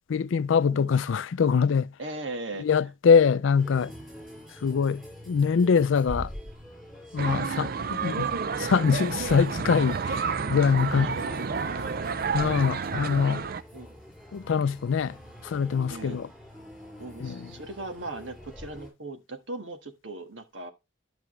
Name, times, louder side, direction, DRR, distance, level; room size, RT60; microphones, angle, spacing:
voice 1, 0.1-1.9 2.6-3.9 4.6-6.3 7.1-8.3 8.6-11.2 12.3-13.4 14.3-15.2 15.4-16.3 17.2-17.4, left 6 dB, 75° left, 0.4 m, -23 dB
voice 2, 0.6-0.9 2.0-2.9 10.8-12.3 13.7-14.0 15.9-16.2 17.0-20.7, right 2 dB, 70° right, 1.6 m, -39 dB
sound 1, 3.6-18.9, equal, 5° right, 5.6 m, -45 dB
sound 2, 7.2-13.6, right 5 dB, 50° right, 0.5 m, -30 dB
12.0 x 6.0 x 3.1 m
head